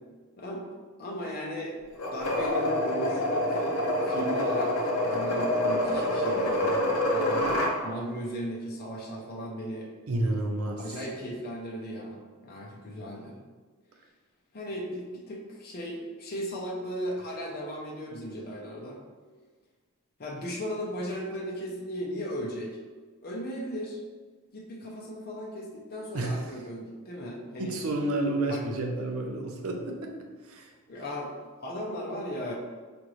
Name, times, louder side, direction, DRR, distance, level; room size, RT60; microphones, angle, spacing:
voice 1, 0.4-0.7 1.0-1.8 2.1-7.4 7.8-9.9 10.8-13.4 14.5-19.0 20.2-22.8 23.2-24.0 24.5-27.8 28.5-28.6 30.9-31.3 31.6-32.5, equal, 45° left, -3 dB, 0.6 m, -36 dB
sound 1, 2.0-7.8, left 1 dB, 85° left, 0.7 m, -27 dB
voice 2, 10.1-10.8 26.1-26.4 27.6-30.1 30.4-30.7, right 2 dB, 75° right, 2 dB, 0.6 m, -30 dB
5.0 x 2.6 x 3.0 m, 1.4 s
head